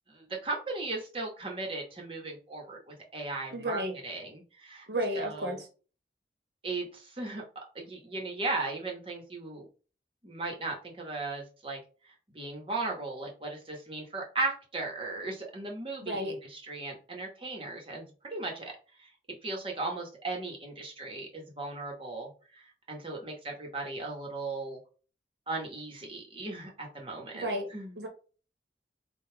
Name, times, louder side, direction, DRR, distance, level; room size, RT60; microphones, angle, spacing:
voice 1, 0.1-4.9 5.2-5.6 6.6-9.7 10.2-11.8 12.3-19.1 19.4-22.3 22.6-24.8 25.5-28.0, right 3 dB, 30° right, 0 dB, 1.1 m, -37 dB
voice 2, 3.5-3.9 4.9-5.7 16.0-16.3 27.3-27.7 28.0-28.1, right 1 dB, 75° right, 3 dB, 1.0 m, -32 dB
3.9 x 2.3 x 4.4 m, 0.37 s
head